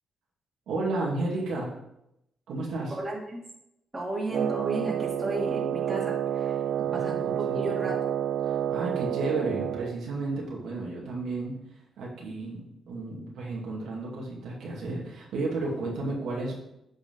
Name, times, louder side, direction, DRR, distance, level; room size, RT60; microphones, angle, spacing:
voice 1, 0.7-1.7 2.5-2.9 6.8-7.7 8.4-11.5 12.0-16.5, right 2 dB, 80° right, -3 dB, 2.5 m, -32 dB
voice 2, 2.9-3.4 3.9-6.6 6.9-8.0, right 2 dB, 20° right, -3 dB, 2.5 m, -33 dB
Wind instrument woodwind instrument, 4.3-10.0, right 10 dB, 55° right, 0.4 m, -29 dB
8.6 x 5.1 x 5.4 m, 0.81 s
cardioid pair, 110°, 0 cm